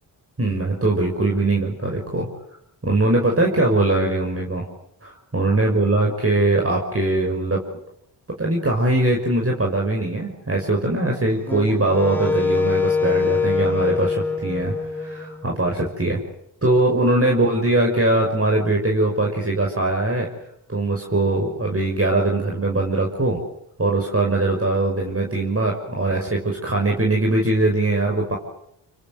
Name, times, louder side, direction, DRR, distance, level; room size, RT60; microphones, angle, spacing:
voice 1, 0.4-2.2 2.8-4.6 5.0-7.6 8.4-14.7 15.0-16.2 16.6-20.3 20.7-23.4 23.8-28.4, right 2 dB, 30° right, 0 dB, 6.0 m, -21 dB
Wind instrument woodwind instrument, 11.4-15.7, left 4 dB, 5° left, 5.4 m, -23 dB
25.0 x 24.5 x 8.0 m, 0.76 s
supercardioid pair, 45°, 49 cm